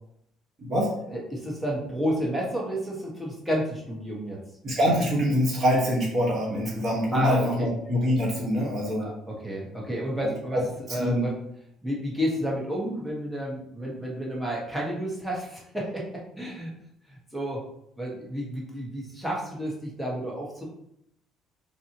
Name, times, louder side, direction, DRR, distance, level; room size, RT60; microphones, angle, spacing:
voice 1, 0.6-0.9 4.6-9.1 10.2-10.6 11.0-11.3, equal, 40° right, -3 dB, 1.4 m, -25 dB
voice 2, 1.1-4.4 7.1-7.7 9.0-10.6 10.9-11.3 11.8-16.1 16.4-16.8 17.1-17.6 18.0-20.6, equal, 5° right, -4 dB, 1.4 m, -31 dB
4.0 x 2.7 x 2.9 m, 0.75 s
supercardioid pair, 75°, 0 cm